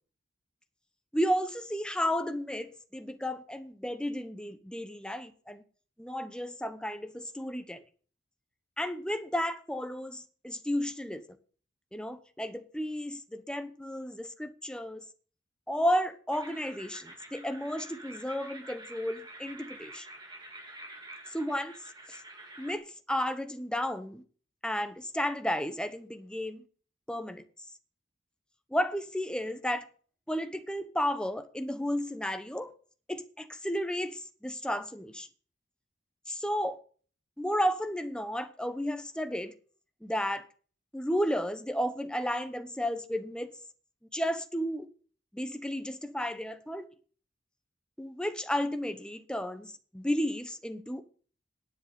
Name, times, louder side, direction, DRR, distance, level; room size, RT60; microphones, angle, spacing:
voice 1, 1.1-5.6 6.0-7.8 8.8-11.2 11.9-15.1 15.7-20.1 21.3-21.7 22.1-22.2 22.6-24.2 24.6-26.6 27.1-27.4 28.7-29.8 30.3-32.7 33.1-35.3 36.3-36.8 37.4-39.5 40.0-40.4 40.9-43.5 44.1-44.9 45.3-46.8 48.0-51.0, equal, 5° left, 0.9 m, -33 dB
sound 1, 16.3-22.8, right 2 dB, 20° right, 2.0 m, -48 dB
10.0 x 7.9 x 7.6 m
head